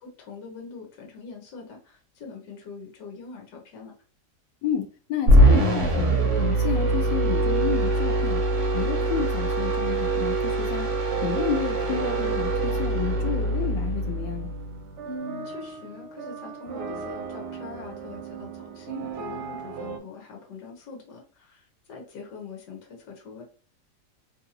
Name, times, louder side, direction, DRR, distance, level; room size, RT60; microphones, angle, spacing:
voice 1, 0.0-3.9 15.0-23.4, left 4 dB, 75° left, 1.5 m, -42 dB
voice 2, 4.6-8.4 8.7-10.9 11.2-14.5, left 8 dB, 90° left, 1.3 m, -31 dB
sound 1, 5.3-14.6, right 1 dB, 50° right, 1.0 m, -23 dB
sound 2, 11.1-20.0, right 6 dB, 75° right, 1.1 m, -37 dB
3.1 x 2.6 x 2.7 m
omnidirectional pair, 1.9 m